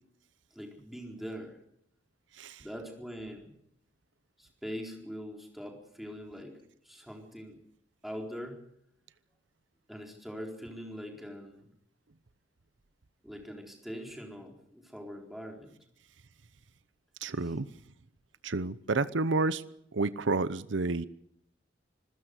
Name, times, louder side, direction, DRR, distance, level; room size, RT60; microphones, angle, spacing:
voice 1, 0.5-1.6 2.6-3.5 4.4-7.6 8.0-8.6 9.9-11.7 13.2-15.7 17.4-17.5, equal, ahead, 2 dB, 4.3 m, -43 dB
voice 2, 17.2-17.7 18.4-19.6 19.9-21.1, right 3 dB, 75° right, 16 dB, 0.8 m, -30 dB
26.5 x 15.5 x 8.1 m, 0.75 s
head